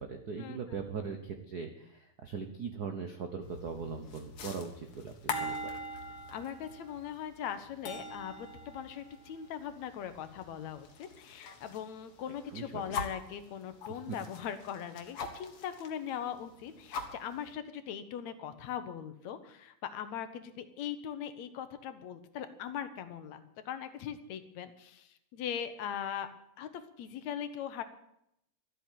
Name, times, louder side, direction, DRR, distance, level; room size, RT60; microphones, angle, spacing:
voice 1, 0.1-5.7 12.5-13.0 13.9-14.2, right 5 dB, 75° right, 5 dB, 0.9 m, -40 dB
sound 1, 3.4-11.9 12.2-13.3 13.8-15.9 16.2-16.3 16.6-17.5, left 2 dB, 55° left, 2.3 m, -42 dB
voice 2, 6.3-27.8, left 9 dB, 70° left, 10 dB, 2.2 m, -40 dB
13.0 x 8.5 x 9.2 m, 0.76 s
omnidirectional pair, 3.4 m